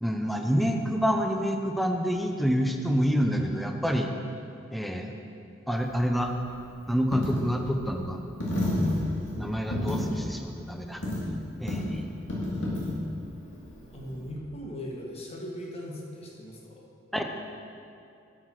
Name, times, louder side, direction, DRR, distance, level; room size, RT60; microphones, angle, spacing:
voice 1, 0.0-4.1 4.7-5.1 5.7-6.3 6.9-8.2 9.4-11.0 11.6-12.0 17.1-17.2, equal, ahead, 3 dB, 0.6 m, -27 dB
Coin (dropping), 5.8-14.3, left 1 dB, 80° left, 2.0 m, -32 dB
voice 2, 13.9-16.8, equal, 35° left, -2 dB, 1.4 m, -39 dB
8.5 x 6.4 x 6.1 m, 2.6 s
head